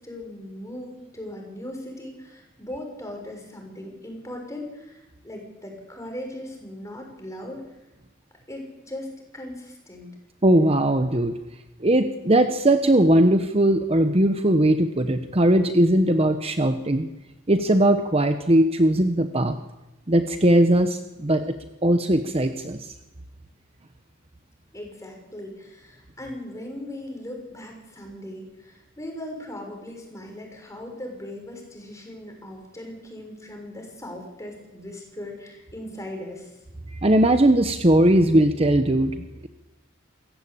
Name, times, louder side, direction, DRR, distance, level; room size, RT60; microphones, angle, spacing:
voice 1, 0.0-7.6 8.5-10.1 24.7-36.6, left 1 dB, 15° left, 1 dB, 6.4 m, -38 dB
voice 2, 10.4-11.4 11.8-17.1 17.5-19.6 20.1-21.6 21.8-22.9 37.0-39.5, right 1 dB, 30° right, 8 dB, 1.0 m, -19 dB
28.0 x 15.5 x 8.7 m, 1.0 s
head